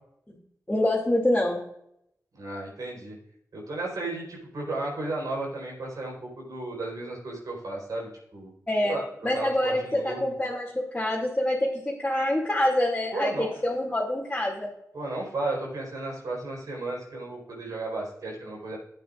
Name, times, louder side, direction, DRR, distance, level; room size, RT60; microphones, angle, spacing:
voice 1, 0.7-1.6 8.7-14.7, left 1 dB, 15° left, -6 dB, 2.5 m, -26 dB
voice 2, 2.4-3.1 3.5-8.5 8.8-9.0 9.3-10.3 13.1-13.5 14.9-18.8, right 2 dB, 75° right, -2 dB, 4.4 m, -34 dB
14.0 x 8.8 x 2.5 m, 0.75 s
cardioid pair, 70°, 6 cm